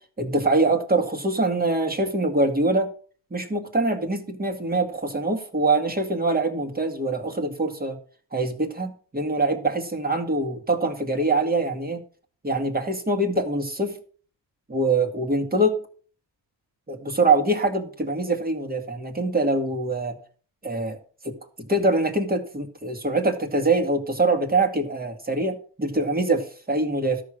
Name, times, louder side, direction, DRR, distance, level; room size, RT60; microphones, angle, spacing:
voice 1, 0.2-2.9 3.3-8.0 8.3-12.0 12.4-14.0 14.7-15.8 16.9-20.2 20.6-21.0 21.2-27.2, right 2 dB, 20° right, 4 dB, 2.1 m, -24 dB
13.0 x 6.4 x 6.3 m, 0.42 s
cardioid pair, 115°, 41 cm